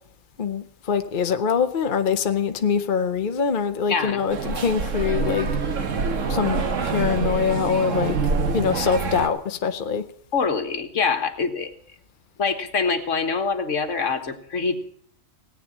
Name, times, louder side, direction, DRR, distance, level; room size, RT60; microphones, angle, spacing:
voice 1, 0.4-5.5 6.3-8.2 8.5-10.1, left 6 dB, 45° left, 0.9 m, -24 dB
voice 2, 3.9-4.2 10.3-11.7 12.4-14.8, left 5 dB, 70° left, 1.8 m, -24 dB
sound 1, 4.3-9.3, right 4 dB, 70° right, 1.6 m, -25 dB
18.0 x 9.2 x 7.2 m
omnidirectional pair, 1.4 m